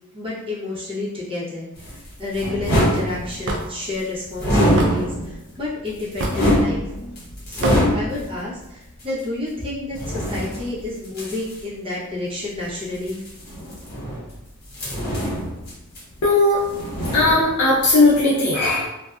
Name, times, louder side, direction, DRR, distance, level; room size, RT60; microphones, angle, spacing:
voice 1, 0.1-6.9 7.5-13.2, left 2 dB, 25° right, -7 dB, 0.8 m, -30 dB
sound 1, 1.8-3.7 4.3-5.4 5.9-8.4 9.0-9.1 9.9-11.6 12.9-14.4 14.7-16.3 16.6-17.7 18.0-18.2, equal, 45° left, 0.9 m, -24 dB
Hammer / Wood, 3.5-3.7 4.8-4.9 6.2-6.5 7.6-7.8, right 2 dB, 55° right, 0.4 m, -24 dB
voice 2, 16.2-16.7 17.1-18.9, left 2 dB, 90° left, -6 dB, 0.5 m, -17 dB
2.5 x 2.2 x 2.3 m, 0.89 s
head